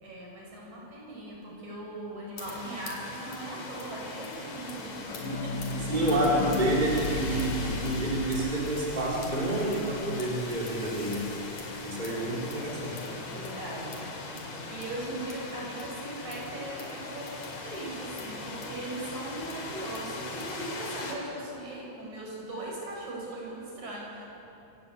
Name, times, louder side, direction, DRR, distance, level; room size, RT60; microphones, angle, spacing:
voice 1, 0.0-6.0 13.3-14.0 14.7-24.3, right 1 dB, 75° right, -3 dB, 7.5 m, -39 dB
sound 1, 2.4-21.1, left 3 dB, 75° left, 4.0 m, -40 dB
sound 2, 4.7-10.2 10.5-10.6 10.8-10.9 11.2-11.3, left 4 dB, 55° left, 2.0 m, -35 dB
voice 2, 5.9-11.3 11.8-13.1, right 1 dB, 15° right, -3 dB, 3.8 m, -28 dB
26.5 x 17.0 x 8.6 m, 3.0 s
omnidirectional pair, 3.4 m